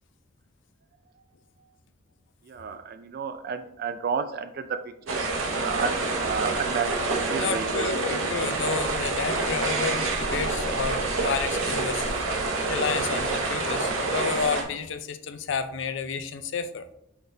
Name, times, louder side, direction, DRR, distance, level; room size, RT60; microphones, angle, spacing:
voice 1, 2.5-7.9, right 5 dB, 45° right, 9 dB, 0.3 m, -32 dB
sound 1, 5.1-14.6, right 3 dB, 80° right, 0.9 m, -27 dB
voice 2, 7.3-16.9, left 6 dB, 60° left, 10 dB, 0.4 m, -31 dB
5.7 x 3.4 x 2.6 m, 0.83 s
head